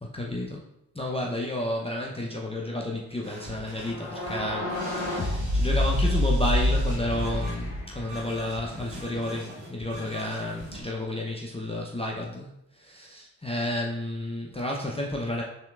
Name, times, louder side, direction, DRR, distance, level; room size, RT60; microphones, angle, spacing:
voice 1, 0.1-0.6 0.9-15.4, left 1 dB, 10° left, -2 dB, 0.7 m, -31 dB
sound 1, 3.2-10.8, right 1 dB, 75° right, 1.5 m, -43 dB
sound 2, 3.8-8.7, left 1 dB, 45° left, 1.6 m, -27 dB
5.6 x 3.3 x 2.5 m, 0.79 s
hypercardioid pair, 40°, 47 cm